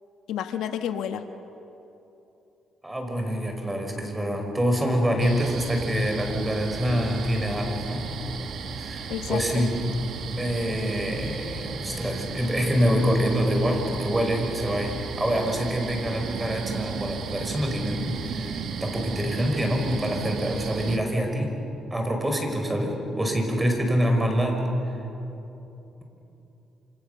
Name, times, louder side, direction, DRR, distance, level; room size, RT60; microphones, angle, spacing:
voice 1, 0.3-1.2 9.1-9.4, left 9 dB, 85° left, 7 dB, 1.3 m, -30 dB
voice 2, 2.8-8.1 8.8-9.8 10.4-21.5 21.9-24.6 24.8-25.0, equal, 15° right, 3 dB, 5.5 m, -26 dB
sound 1, 5.2-21.0, right 6 dB, 65° right, 1.9 m, -35 dB
28.0 x 27.5 x 6.9 m, 3.0 s
cardioid pair, 90°, 0 cm